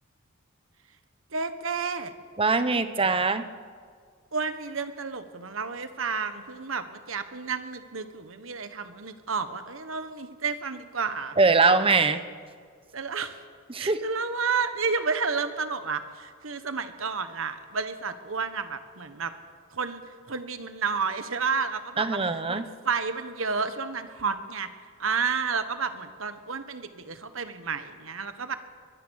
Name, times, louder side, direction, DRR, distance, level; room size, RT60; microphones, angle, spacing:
voice 1, 1.3-2.1 4.3-11.3 12.9-13.4 13.8-19.3 19.7-20.0 20.3-22.2 22.5-24.7 25.0-28.5, right 5 dB, 70° right, 10 dB, 1.5 m, -31 dB
voice 2, 2.4-3.4 11.4-12.2 13.7-14.0 22.0-22.7, right 4 dB, 25° right, 11 dB, 1.1 m, -22 dB
22.5 x 22.5 x 6.5 m, 2.1 s
head